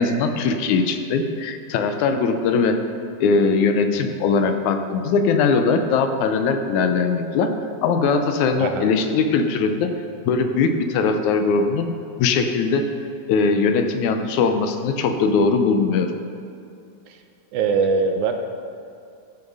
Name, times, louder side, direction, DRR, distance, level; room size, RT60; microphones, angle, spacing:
voice 1, 0.0-2.7 3.2-7.5 7.8-9.9 10.3-11.9 12.2-12.8 13.3-16.1, left 4 dB, 80° left, 7 dB, 2.1 m, -20 dB
voice 2, 17.5-18.3, right 5 dB, 75° right, 5 dB, 2.1 m, -21 dB
14.0 x 6.7 x 5.4 m, 2.5 s
omnidirectional pair, 3.5 m